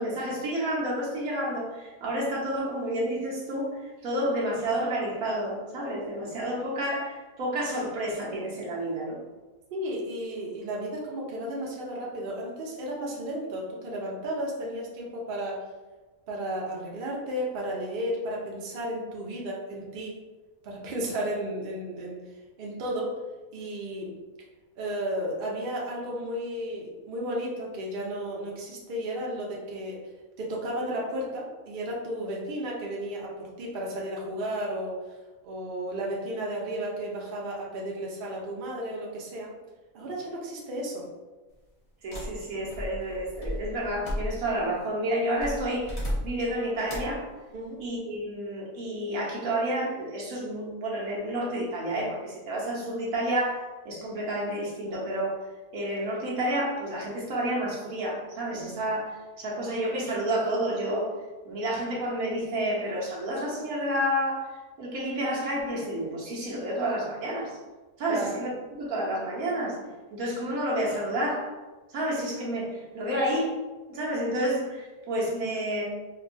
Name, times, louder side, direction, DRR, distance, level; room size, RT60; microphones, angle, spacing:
voice 1, 0.0-9.2 42.0-47.3 47.8-55.4 55.7-61.1 61.4-64.5 64.8-67.6 68.0-69.8 70.1-71.6 71.9-73.6 73.9-75.8, right 1 dB, 75° right, -4 dB, 1.3 m, -30 dB
voice 2, 9.7-15.7 16.3-20.2 20.6-22.3 22.6-23.2 23.5-24.1 24.8-30.0 30.4-35.2 35.4-39.5 39.9-41.1 47.5-47.8 68.1-68.4, right 1 dB, 50° right, -3 dB, 0.7 m, -33 dB
sound 1, 42.1-44.7 45.4-46.5 46.9-47.2, equal, 35° left, 0.6 m, -34 dB
4.3 x 2.2 x 2.6 m, 1.2 s
omnidirectional pair, 1.5 m